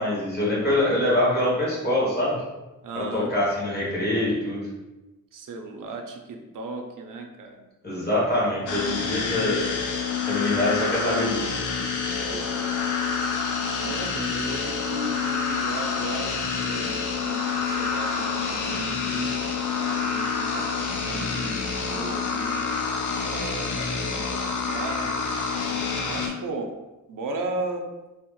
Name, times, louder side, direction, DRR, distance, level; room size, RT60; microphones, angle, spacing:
voice 1, 0.0-2.4 2.9-4.7 7.8-9.7 10.3-11.7, left 1 dB, 30° left, -7 dB, 1.1 m, -24 dB
voice 2, 2.8-3.3 5.3-7.6 12.2-12.8 13.7-16.3 16.6-19.3 19.7-22.5 23.3-25.1 26.0-26.7 27.1-27.9, right 3 dB, 85° right, 3 dB, 0.5 m, -36 dB
sound 1, 8.7-26.3, left 5 dB, 75° left, 0.4 m, -27 dB
2.8 x 2.0 x 3.0 m, 1.0 s
wide cardioid pair, 140°, 31 cm